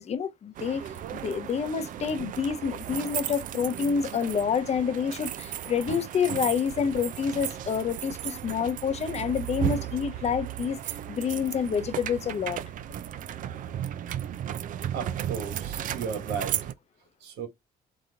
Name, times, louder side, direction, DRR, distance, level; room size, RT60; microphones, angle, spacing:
voice 1, 0.0-12.6, left 7 dB, 40° left, 0.7 m, -28 dB
sound 1, 0.6-16.7, right 11 dB, 50° right, 0.4 m, -35 dB
voice 2, 14.9-16.7 17.2-17.5, right 6 dB, 85° right, 1.6 m, -35 dB
4.0 x 3.0 x 3.7 m
cardioid pair, 110°, 17 cm